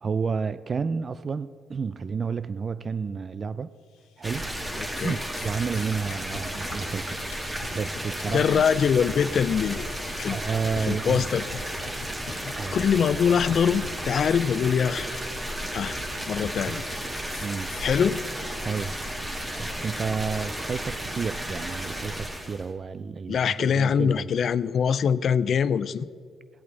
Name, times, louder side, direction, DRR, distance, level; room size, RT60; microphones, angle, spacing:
voice 1, 0.0-3.7 4.2-4.5 5.0-7.2 7.7-8.6 10.3-11.2 12.5-12.8 16.6-16.8 17.4-17.7 18.6-19.0 19.6-24.3, right 5 dB, 40° right, 15 dB, 0.3 m, -31 dB
sound 1, 3.9-4.4 4.7-20.7, left 4 dB, 85° left, 1.1 m, -44 dB
sound 2, 4.2-22.7, right 1 dB, 15° right, 1.6 m, -33 dB
voice 2, 4.8-5.2 8.3-10.4 10.8-11.5 12.4-15.1 15.7-16.0 16.2-16.8 17.8-18.2 23.3-26.1, left 7 dB, 55° left, 17 dB, 0.4 m, -24 dB
17.0 x 8.4 x 4.1 m, 2.1 s
supercardioid pair, 70°, 0 cm